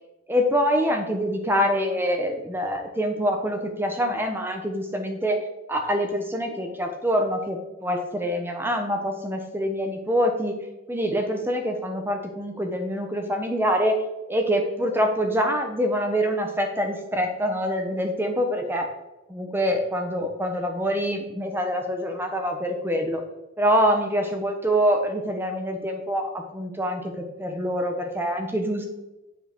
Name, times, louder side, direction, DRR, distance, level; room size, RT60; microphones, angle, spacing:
voice 1, 0.3-5.4 5.7-10.6 10.9-14.0 14.3-18.9 19.3-23.2 23.6-28.9, equal, 10° right, 4 dB, 1.2 m, -25 dB
9.7 x 5.1 x 6.2 m, 1.0 s
head